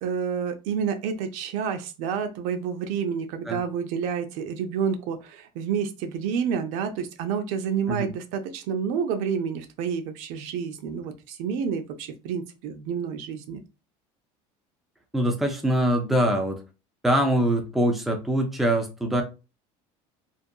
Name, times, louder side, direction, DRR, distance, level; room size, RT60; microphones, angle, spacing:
voice 1, 0.0-13.6, right 7 dB, 75° right, 0.5 m, -29 dB
voice 2, 15.1-16.6 17.0-19.2, right 1 dB, ahead, 0.4 m, -23 dB
2.6 x 2.4 x 2.2 m
cardioid pair, 160°, 13 cm